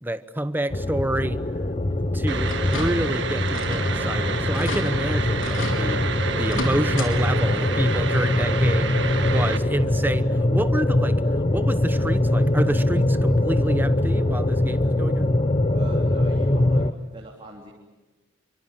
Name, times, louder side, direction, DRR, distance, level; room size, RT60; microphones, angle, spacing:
voice 1, 0.0-1.4 2.0-11.2 11.5-15.3, right 1 dB, 10° right, 11 dB, 1.0 m, -28 dB
sound 1, 0.7-16.9, left 1 dB, 30° left, 0.8 m, -23 dB
sound 2, 2.3-9.6, right 5 dB, 60° right, 1.8 m, -30 dB
sound 3, 2.5-3.2 3.5-3.9 4.2-4.3 4.5-4.9 5.4-5.8 6.4-7.1 7.5-7.6 9.0-9.1 9.6-9.7, left 2 dB, 75° left, 4.3 m, -33 dB
voice 2, 15.7-17.7, right 1 dB, 25° right, -1 dB, 3.4 m, -42 dB
28.5 x 25.0 x 7.5 m, 1.2 s
head